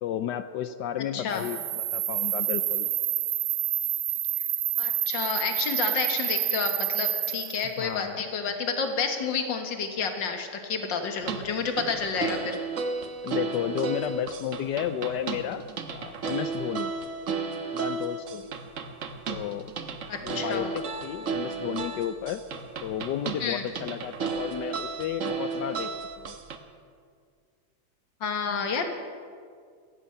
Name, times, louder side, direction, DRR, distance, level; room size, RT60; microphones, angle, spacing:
voice 1, 0.0-2.9 7.6-8.2 13.2-16.9 17.7-18.5 19.3-19.7 20.2-22.4 22.8-26.3, left 10 dB, 75° left, 12 dB, 1.0 m, -33 dB
voice 2, 1.1-1.4 4.8-12.6 20.1-20.7 23.4-23.6 28.2-28.8, left 5 dB, 60° left, 5 dB, 2.0 m, -30 dB
sound 1, 1.3-7.6, right 13 dB, 70° right, 1.1 m, -28 dB
sound 2, 11.2-26.6, right 5 dB, 50° right, 1.0 m, -33 dB
15.5 x 15.5 x 5.7 m, 2.1 s
omnidirectional pair, 2.4 m